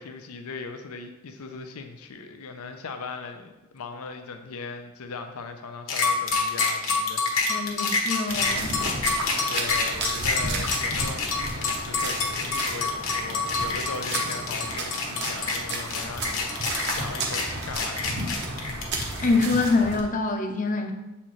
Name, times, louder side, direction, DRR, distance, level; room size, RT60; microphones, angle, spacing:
voice 1, 0.0-7.9 9.1-18.4, left 4 dB, 90° left, 6 dB, 0.5 m, -39 dB
sound 1, 5.9-19.3, left 4 dB, 65° left, 1.1 m, -27 dB
voice 2, 7.5-8.8 19.2-20.9, left 3 dB, 35° left, 5 dB, 0.6 m, -25 dB
sound 2, 8.3-20.0, right 2 dB, 50° right, 0.9 m, -33 dB
7.3 x 4.3 x 3.1 m, 1.0 s
head